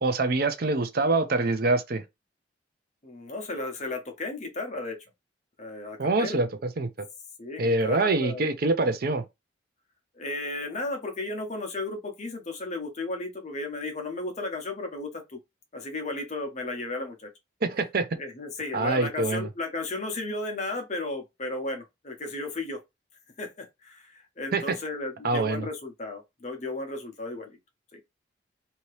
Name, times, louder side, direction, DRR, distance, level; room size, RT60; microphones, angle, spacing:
voice 1, 0.0-2.0 6.0-7.1 7.6-9.2 17.6-18.1 18.7-19.5 24.5-24.7 25.2-25.7, right 3 dB, 50° right, 0.5 m, -25 dB
voice 2, 3.0-5.0 5.6-6.4 7.4-8.5 10.1-15.4 15.7-17.3 18.2-22.8 23.4-27.6 27.9-28.0, left 2 dB, 40° left, 0.8 m, -34 dB
2.8 x 2.8 x 3.2 m
head